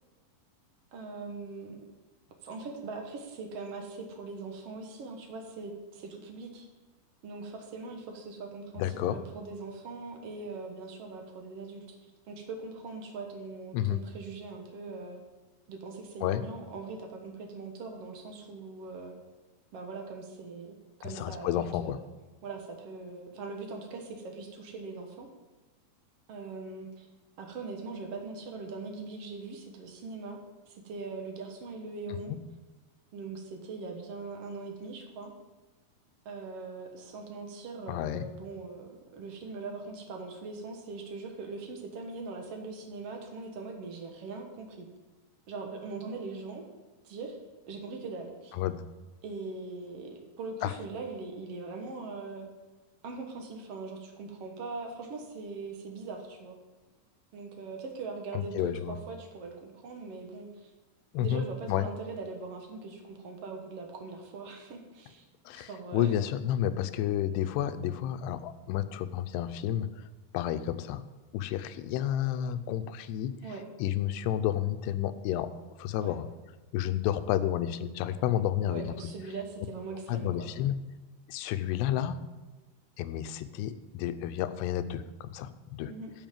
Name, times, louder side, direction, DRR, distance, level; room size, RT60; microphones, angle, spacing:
voice 1, 0.9-1.8 2.4-6.7 7.2-12.0 12.2-15.2 15.7-19.1 19.7-22.1 22.4-25.3 26.3-27.1 27.4-30.4 30.7-32.3 33.1-35.3 36.2-44.9 45.5-46.6 47.0-47.4 47.7-48.5 49.2-52.5 53.0-56.6 57.3-60.7 61.2-65.2 65.5-66.1 73.4-73.6 76.0-76.2 78.7-80.5 85.8-86.1, right 3 dB, 70° right, 2 dB, 1.4 m, -41 dB
voice 2, 8.8-9.2 13.7-14.0 16.2-16.4 21.0-22.0 32.3-32.4 37.9-38.3 48.6-48.8 50.6-50.7 58.3-59.0 61.1-61.9 65.5-70.0 70.3-71.0 71.3-73.3 73.8-75.5 75.8-76.3 76.7-79.0 80.1-80.8 81.3-82.2 83.0-85.9, left 11 dB, 90° left, 11 dB, 2.7 m, -31 dB
12.0 x 5.4 x 7.4 m, 1.2 s
omnidirectional pair, 4.7 m